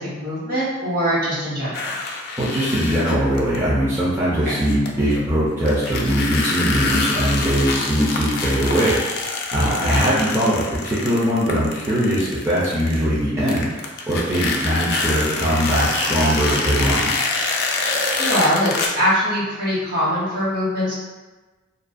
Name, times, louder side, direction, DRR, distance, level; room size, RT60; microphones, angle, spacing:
voice 1, 0.0-1.9 9.8-10.1 18.2-20.9, equal, 50° right, -9 dB, 1.1 m, -22 dB
sound 1, 1.7-3.6 4.4-5.2 5.7-13.2 13.5-18.9, left 3 dB, 55° left, 0.3 m, -26 dB
voice 2, 2.4-13.7 14.1-17.1, equal, 15° right, -9 dB, 0.4 m, -21 dB
2.4 x 2.2 x 2.5 m, 1.2 s
head